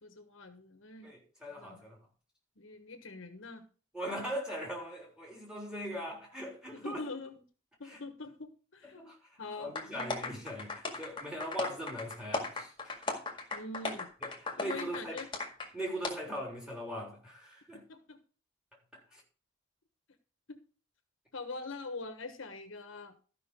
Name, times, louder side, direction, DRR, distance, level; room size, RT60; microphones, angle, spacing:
voice 1, 0.0-1.1 1.5-1.8 2.6-3.6 6.7-7.4 7.8-10.4 13.5-14.1 14.6-15.3 17.9-18.2 20.5-20.6 21.3-23.1, left 3 dB, 70° left, 1.2 m, -44 dB
voice 2, 1.0-2.0 3.9-7.1 7.8-8.0 9.0-9.2 9.6-13.1 14.2-15.2 15.7-17.8 18.9-19.2, equal, 5° right, 3.6 m, -40 dB
sound 1, 9.7-15.7 16.0-16.1, left 3 dB, 25° left, 1.9 m, -37 dB
13.5 x 5.7 x 5.2 m
head